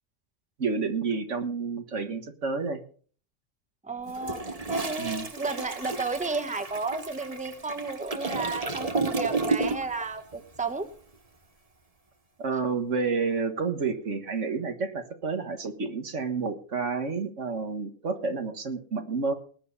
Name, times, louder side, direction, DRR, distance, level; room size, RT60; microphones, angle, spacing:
voice 1, 0.6-2.8 5.0-5.2 12.4-19.3, right 4 dB, 70° right, 7 dB, 1.9 m, -30 dB
voice 2, 3.8-10.9, right 3 dB, 5° right, 8 dB, 1.2 m, -33 dB
Toilet flush, 4.1-10.0 10.3-10.6, right 3 dB, 30° right, 1.4 m, -32 dB
19.5 x 9.4 x 4.2 m, 0.43 s
omnidirectional pair, 1.3 m